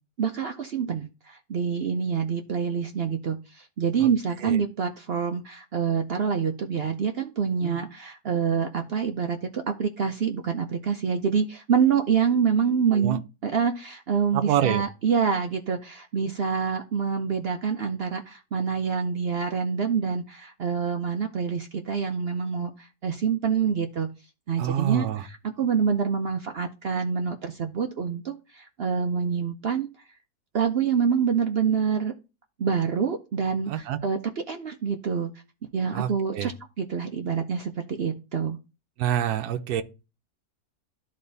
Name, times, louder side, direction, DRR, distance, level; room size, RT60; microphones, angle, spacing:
voice 1, 0.2-24.1 24.5-29.9 30.5-32.1 32.6-34.2 34.5-35.3 35.7-36.5 36.8-38.6, right 6 dB, 60° right, 0.6 m, -26 dB
voice 2, 14.3-14.8 24.6-25.3 33.7-34.0 35.9-36.5 39.0-39.8, right 10 dB, 75° right, 1.2 m, -27 dB
12.5 x 4.2 x 2.6 m
omnidirectional pair, 1.7 m